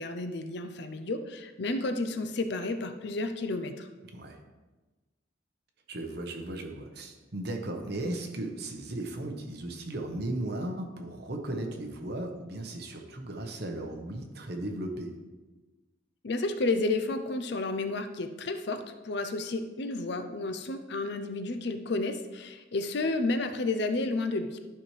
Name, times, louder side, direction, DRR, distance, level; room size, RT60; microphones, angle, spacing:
voice 1, 0.0-3.9 16.2-24.6, left 2 dB, 55° left, 8 dB, 0.5 m, -31 dB
voice 2, 5.9-15.2, right 1 dB, 55° right, 3 dB, 1.0 m, -36 dB
12.0 x 5.8 x 3.2 m, 1.2 s
head